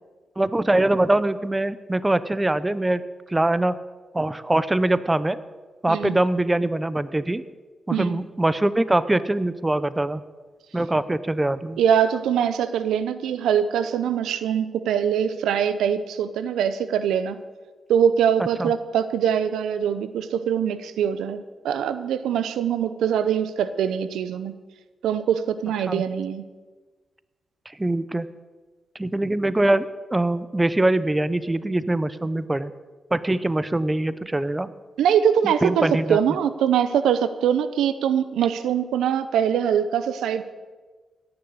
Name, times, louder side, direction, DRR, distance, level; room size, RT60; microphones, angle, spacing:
voice 1, 0.4-3.0 3.3-3.8 4.1-5.4 5.8-7.4 7.9-10.2 10.7-11.8 18.6-18.7 25.9-26.0 27.8-28.3 29.0-32.7 33.1-34.7 35.4-36.2, right 1 dB, 20° right, 15 dB, 0.7 m, -23 dB
voice 2, 7.9-8.2 11.8-17.4 17.9-24.5 25.0-26.4 35.0-40.4, right 8 dB, 85° right, 13 dB, 0.6 m, -23 dB
16.5 x 6.9 x 7.9 m, 1.3 s
supercardioid pair, 50°, 0 cm